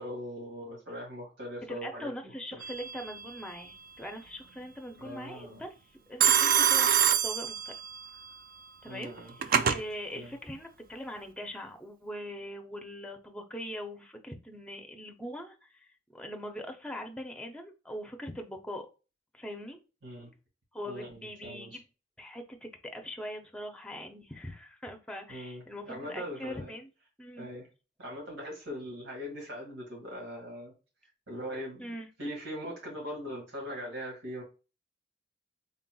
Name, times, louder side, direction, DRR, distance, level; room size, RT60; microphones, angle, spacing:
voice 1, 0.0-2.6 5.0-5.7 8.8-9.4 10.1-10.4 20.0-20.3 20.8-21.8 25.3-26.7 27.4-27.7 28.0-30.7 31.3-31.9 32.2-34.4, equal, 80° right, -1 dB, 2.0 m, -41 dB
voice 2, 1.6-5.7 6.1-7.7 8.8-15.7 16.1-18.9 19.3-19.8 20.7-21.8 22.2-26.9 27.2-27.5 31.8-32.1, equal, 5° left, 4 dB, 0.5 m, -41 dB
Telephone, 2.6-3.1 6.2-8.1 9.0-9.8, right 8 dB, 50° right, 0.3 m, -25 dB
4.0 x 3.7 x 2.3 m, 0.32 s
head